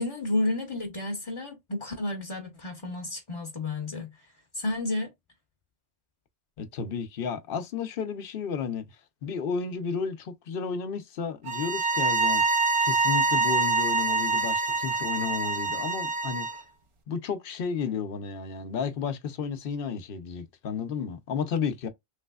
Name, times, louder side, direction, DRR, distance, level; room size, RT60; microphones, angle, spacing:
voice 1, 0.0-4.1 4.5-5.1, left 2 dB, 35° left, 0.7 m, -31 dB
voice 2, 6.6-8.8 9.2-12.4 12.8-16.5 17.1-21.9, left 6 dB, 65° left, 0.8 m, -32 dB
sound 1, 11.5-16.6, right 3 dB, 40° right, 0.5 m, -25 dB
3.3 x 3.1 x 2.3 m
omnidirectional pair, 1.1 m